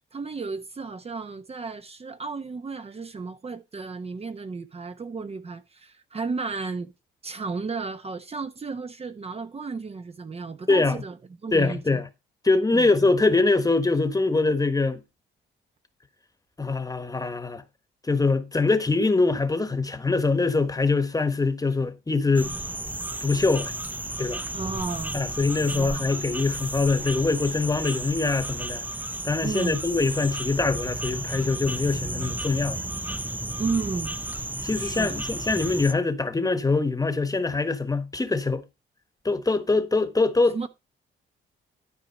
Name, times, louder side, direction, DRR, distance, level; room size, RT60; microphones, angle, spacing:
voice 1, 0.1-6.9 7.2-11.1 11.4-11.8 12.7-12.9 24.5-25.2 25.7-26.1 29.4-29.8 33.6-34.2 34.8-35.2 40.5-40.7, right 4 dB, 30° right, 0.9 m, -33 dB
voice 2, 10.7-11.0 11.5-12.0 12.4-15.0 16.6-17.6 18.1-22.5 23.2-23.7 24.2-24.4 25.1-28.8 29.2-32.8 34.6-38.6 39.2-40.7, left 3 dB, 20° left, 1.3 m, -23 dB
sound 1, 22.3-35.9, right 1 dB, 10° right, 0.6 m, -33 dB
12.5 x 4.8 x 4.2 m
cardioid pair, 90°, 20 cm